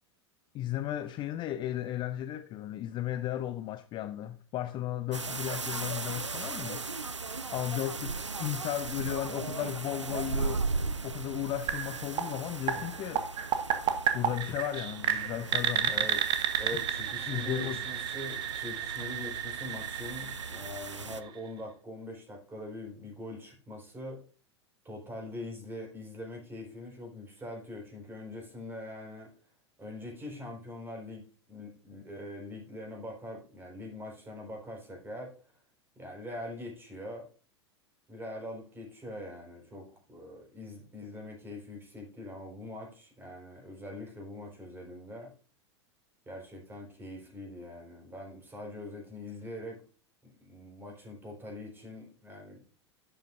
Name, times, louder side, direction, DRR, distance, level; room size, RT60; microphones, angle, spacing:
voice 1, 0.5-6.9 7.5-10.7 11.0-13.3 14.1-16.1 17.3-17.8, left 12 dB, 30° left, 0.5 m, -35 dB
sound 1, 5.1-21.2, right 4 dB, 90° right, 0.5 m, -38 dB
sound 2, 11.7-21.5, right 9 dB, 35° right, 1.2 m, -32 dB
voice 2, 15.9-24.2 24.8-29.3 29.8-31.2 31.5-35.3 36.0-37.3 38.1-45.3 46.3-49.8 50.2-52.6, left 1 dB, 15° right, 4.2 m, -43 dB
11.5 x 7.8 x 2.6 m
figure-of-eight pair, 90°, 15 cm